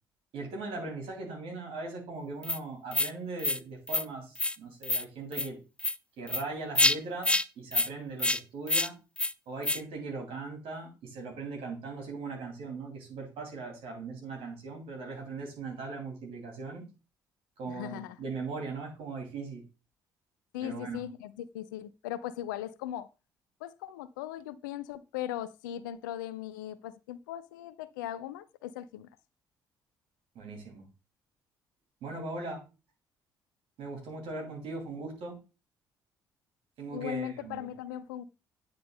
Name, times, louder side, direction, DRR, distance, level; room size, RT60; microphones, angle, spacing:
voice 1, 0.3-5.6 6.2-8.9 9.5-16.8 17.6-19.6 20.6-21.0 30.3-30.8 32.0-32.6 33.8-35.4 36.8-37.7, right 3 dB, 60° right, 2.8 m, -39 dB
sound 1, 2.4-2.6 2.9-3.1 3.4-3.6 3.9-4.0 4.4-4.6 4.8-5.0 5.3-5.5 5.8-6.0 6.3-6.4 6.8-7.0 7.2-7.4 7.7-7.9 8.2-8.4 8.7-8.9 9.2-9.3 9.6-9.8, left 2 dB, 10° left, 0.3 m, -27 dB
voice 2, 17.7-18.2 20.5-23.1 23.6-29.1 36.9-38.2, left 11 dB, 75° left, 0.4 m, -38 dB
9.4 x 3.7 x 3.8 m
figure-of-eight pair, 45°, 11 cm